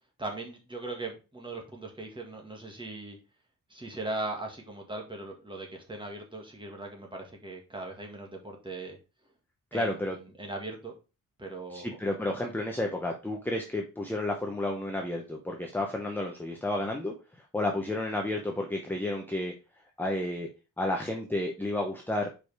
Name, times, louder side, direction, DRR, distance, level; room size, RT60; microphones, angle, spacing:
voice 1, 0.2-3.2 3.7-9.0 9.7-10.9 11.4-12.0, right 2 dB, 15° right, 1 dB, 1.6 m, -39 dB
voice 2, 9.7-10.2 11.7-17.1 17.5-19.5 20.0-20.5 20.8-22.3, left 1 dB, 5° left, 1 dB, 0.8 m, -31 dB
5.2 x 4.9 x 4.7 m, 0.31 s
wide cardioid pair, 170°, 34 cm